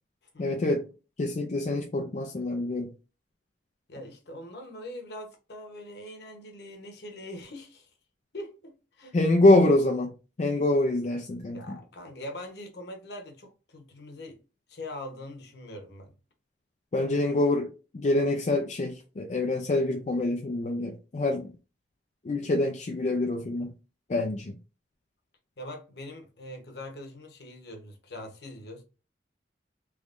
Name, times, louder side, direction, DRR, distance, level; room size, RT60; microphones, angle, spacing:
voice 1, 0.4-0.8 1.2-2.9 9.1-10.1 10.4-11.8 16.9-17.7 17.9-21.5 22.2-23.7 24.1-24.6, left 2 dB, 40° left, 0.4 m, -25 dB
voice 2, 3.9-7.9 8.3-9.2 11.5-14.4 14.7-16.1 25.6-28.8, left 1 dB, 65° left, 0.9 m, -42 dB
3.5 x 3.1 x 2.5 m
head